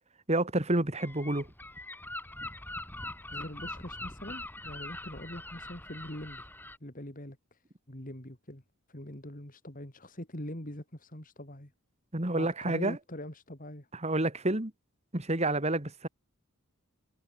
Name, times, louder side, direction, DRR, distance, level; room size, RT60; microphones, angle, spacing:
voice 1, 0.3-1.5 12.1-13.0 14.0-14.7 15.1-16.1, right 2 dB, 30° right, 1.9 m, -29 dB
Gull seagull, 1.0-6.8, left 1 dB, 10° left, 6.1 m, -42 dB
voice 2, 3.3-6.5 6.8-8.6 8.9-11.7 12.3-13.9, left 1 dB, 35° left, 3.4 m, -43 dB
head